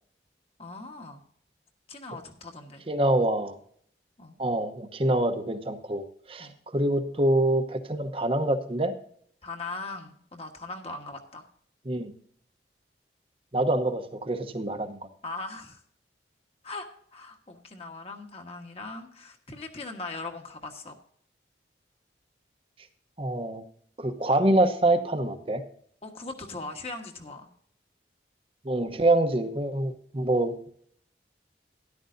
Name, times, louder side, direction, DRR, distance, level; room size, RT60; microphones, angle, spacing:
voice 1, 0.6-1.2 1.9-2.8 4.2-4.4 6.4-6.5 9.4-11.5 15.2-15.8 16.6-20.9 26.0-27.5, left 3 dB, 35° left, 4 dB, 1.4 m, -40 dB
voice 2, 2.9-3.6 4.4-8.9 11.8-12.1 13.5-15.0 23.2-23.6 24.0-25.6 28.6-30.7, right 1 dB, 30° right, 8 dB, 0.9 m, -25 dB
13.0 x 11.5 x 2.6 m, 0.62 s
head